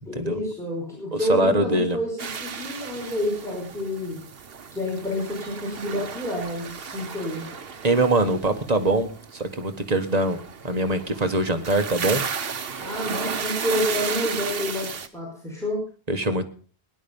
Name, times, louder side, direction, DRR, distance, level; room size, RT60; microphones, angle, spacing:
voice 1, 0.1-4.2 4.7-7.4 12.8-15.9, left 1 dB, 5° left, -3 dB, 5.3 m, -29 dB
voice 2, 1.1-2.0 7.8-10.4 10.6-12.2 16.1-16.4, right 2 dB, 40° right, 7 dB, 1.5 m, -23 dB
sound 1, 2.2-15.1, right 6 dB, 70° right, 1.2 m, -34 dB
18.0 x 11.0 x 5.4 m, 0.41 s
omnidirectional pair, 1.0 m